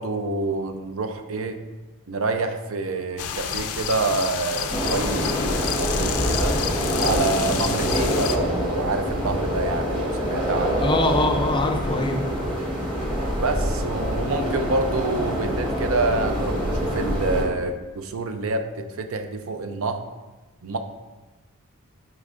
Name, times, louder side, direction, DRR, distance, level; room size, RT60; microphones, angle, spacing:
voice 1, 0.0-1.6 2.1-6.6 7.0-10.8 13.4-20.0 20.6-20.8, right 3 dB, 65° right, 6 dB, 0.5 m, -27 dB
sound 1, 3.2-8.4, left 7 dB, 85° left, 0.5 m, -29 dB
sound 2, 4.7-17.4, equal, 25° right, 1.2 m, -25 dB
voice 2, 10.8-12.3, left 2 dB, 20° left, 5 dB, 0.4 m, -23 dB
9.7 x 4.5 x 2.5 m, 1.2 s
head